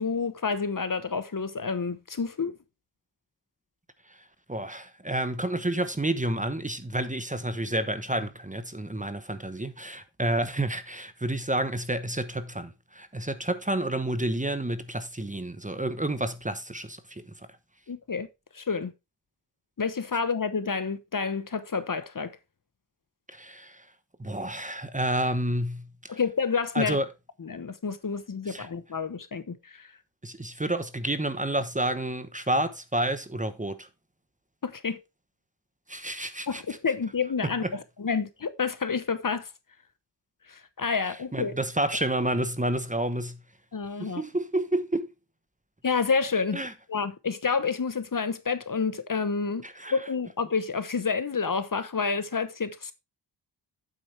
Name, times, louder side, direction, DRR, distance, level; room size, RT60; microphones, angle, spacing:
voice 1, 0.0-2.5 17.9-18.3 18.5-18.9 19.8-22.4 26.1-27.0 27.4-29.9 34.6-35.0 36.5-39.5 40.5-41.5 43.7-44.2 45.8-46.6 46.9-49.6 49.9-52.9, left 5 dB, 45° left, 1.0 m, -29 dB
voice 2, 4.5-17.2 23.3-23.8 24.2-26.2 26.7-27.1 28.5-28.7 30.2-33.9 35.9-36.6 37.4-37.7 41.3-43.4 44.0-45.1 46.5-46.7 49.6-50.0, right 1 dB, 15° right, 1.0 m, -30 dB
8.8 x 7.9 x 3.3 m
wide cardioid pair, 75°, 45 cm